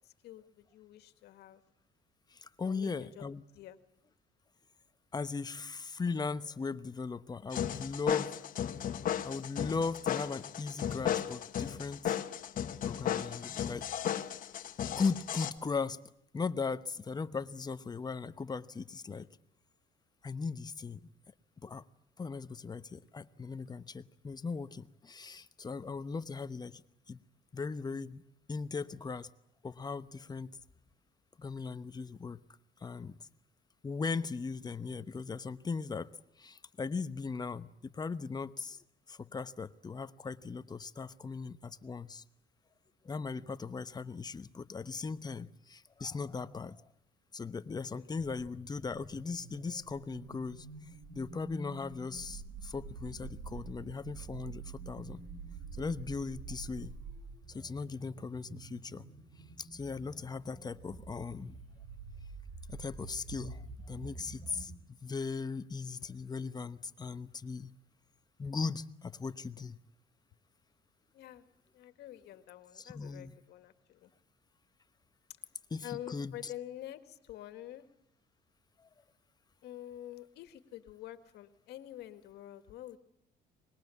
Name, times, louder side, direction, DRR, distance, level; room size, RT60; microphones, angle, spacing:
voice 1, 0.0-1.6 2.6-3.3 3.5-3.8 47.9-48.4 71.1-71.5 71.7-74.1 75.8-77.9 79.6-83.0, left 13 dB, 75° left, 2.0 m, -48 dB
voice 2, 2.3-3.4 5.1-8.4 9.2-12.1 12.8-13.9 15.0-16.0 16.3-19.3 20.2-21.1 21.6-21.8 22.2-26.8 27.1-27.2 27.5-28.2 28.5-29.3 29.6-30.6 31.4-32.4 32.8-33.2 33.8-36.1 36.4-42.2 43.0-46.8 47.3-50.7 51.1-55.2 55.7-57.0 57.5-59.0 59.6-61.6 62.7-64.7 65.0-67.7 68.4-69.8 72.8-73.3 75.7-76.5, left 4 dB, 25° left, 1.0 m, -38 dB
sound 1, 7.5-15.5, left 9 dB, 55° left, 1.4 m, -35 dB
sound 2, 48.2-64.8, right 4 dB, 50° right, 7.7 m, -48 dB
24.5 x 21.5 x 8.5 m
cardioid pair, 110°, 17 cm